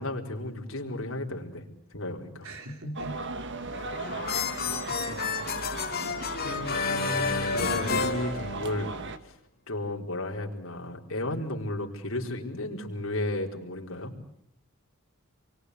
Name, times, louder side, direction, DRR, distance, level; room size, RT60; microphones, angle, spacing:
voice 1, 0.0-1.6 1.9-2.5 6.4-9.0 9.2-9.4 9.7-14.1, left 1 dB, 65° left, 1 dB, 4.6 m, -34 dB
voice 2, 2.4-3.2 4.5-5.3, right 1 dB, 90° right, 5 dB, 4.3 m, -41 dB
sound 1, 2.9-9.2, right 3 dB, 60° right, 1.7 m, -37 dB
sound 2, 3.7-9.0, left 5 dB, 50° left, 2.9 m, -31 dB
29.0 x 23.5 x 8.2 m, 0.69 s
head